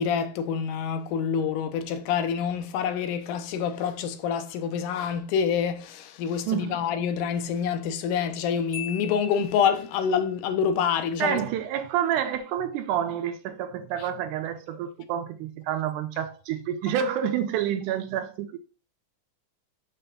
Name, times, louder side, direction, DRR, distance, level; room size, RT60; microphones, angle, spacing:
voice 1, 0.0-11.5, left 7 dB, 90° left, 2.3 m, -27 dB
voice 2, 6.5-6.8 11.2-18.6, right 9 dB, 85° right, 2.2 m, -28 dB
Marimba xylophone, 8.7-10.1, left 11 dB, 50° left, 1.9 m, -40 dB
6.1 x 3.4 x 5.4 m
omnidirectional pair, 3.6 m